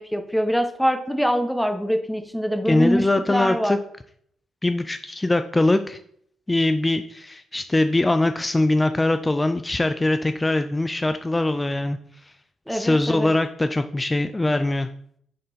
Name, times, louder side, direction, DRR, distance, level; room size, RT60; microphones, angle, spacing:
voice 1, 0.0-3.8 12.7-13.3, equal, ahead, 7 dB, 1.0 m, -24 dB
voice 2, 2.7-3.8 4.6-6.0 6.5-12.0 12.7-14.9, left 2 dB, 20° left, 9 dB, 0.4 m, -22 dB
6.1 x 4.4 x 4.1 m, 0.65 s
hypercardioid pair, 45°, 0 cm